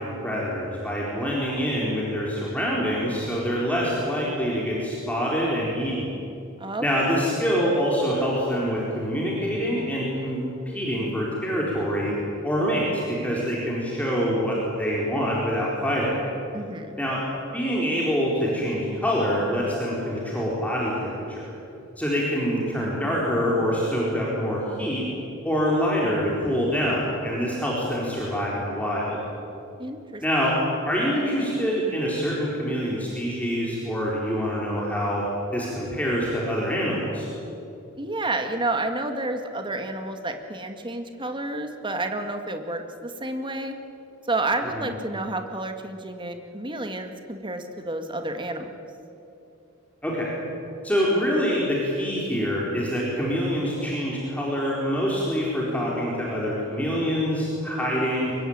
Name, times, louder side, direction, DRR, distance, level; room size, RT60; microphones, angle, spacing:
voice 1, 0.0-6.1 6.8-12.2 12.4-16.2 17.0-17.2 17.5-21.5 22.0-25.0 25.4-29.2 30.2-30.6 30.9-35.3 35.5-37.3 44.8-44.9 50.0-50.3 50.8-58.3, equal, 5° left, -5 dB, 4.3 m, -25 dB
voice 2, 6.6-7.2 16.5-17.0 29.8-30.2 38.0-43.8 44.3-48.7, right 2 dB, 25° right, 6 dB, 2.0 m, -30 dB
24.0 x 22.5 x 8.9 m, 2.7 s
head